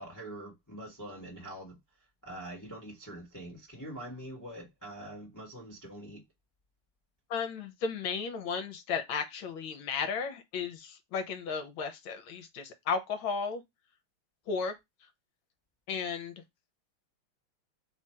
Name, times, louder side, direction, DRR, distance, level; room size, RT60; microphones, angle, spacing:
voice 1, 0.0-1.8 2.2-6.2, right 1 dB, 10° left, 0.9 m, -44 dB
voice 2, 7.3-13.6 14.5-14.7 15.9-16.3, left 5 dB, 70° left, 1.6 m, -34 dB
3.9 x 2.5 x 4.3 m
omnidirectional pair, 2.4 m